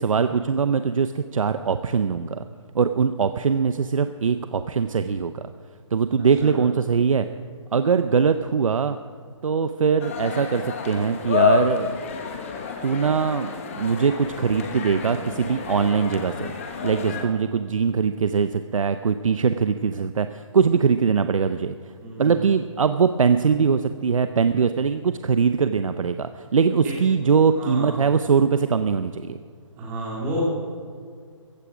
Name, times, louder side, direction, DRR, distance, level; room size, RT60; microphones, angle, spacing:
voice 1, 0.0-2.4 2.7-5.4 5.9-7.2 7.7-9.0 9.4-12.0 12.8-16.5 16.8-21.9 22.2-29.4, right 6 dB, 80° right, 10 dB, 0.7 m, -22 dB
sound 1, 10.0-17.3, left 5 dB, 25° left, 1.2 m, -28 dB
voice 2, 22.0-22.5 26.8-26.9 27.5-28.1 29.8-30.4, equal, 10° right, -4 dB, 2.9 m, -31 dB
15.5 x 14.5 x 5.0 m, 2.1 s
hypercardioid pair, 175°, 17 cm